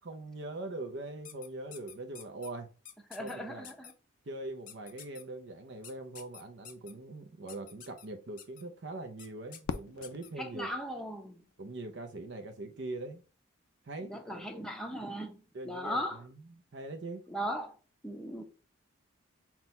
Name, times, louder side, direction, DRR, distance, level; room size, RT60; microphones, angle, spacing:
voice 1, 0.1-2.7 3.2-3.7 4.2-10.7 11.6-13.2 13.8-14.5 15.5-17.2, right 2 dB, 60° right, 0.6 m, -42 dB
sound 1, 1.2-2.5 2.8-3.3 3.6-3.9 4.7-5.2 5.8-6.9 7.5-8.1 8.4-8.6 9.2-9.3 9.5-10.3, left 9 dB, 40° left, 0.6 m, -49 dB
voice 2, 3.1-3.9 10.4-11.4 14.1-16.2 17.3-17.7 18.0-18.4, equal, 5° left, 0.6 m, -38 dB
Fireworks, 9.6-11.9, left 5 dB, 90° left, 0.4 m, -42 dB
5.9 x 2.2 x 4.0 m
head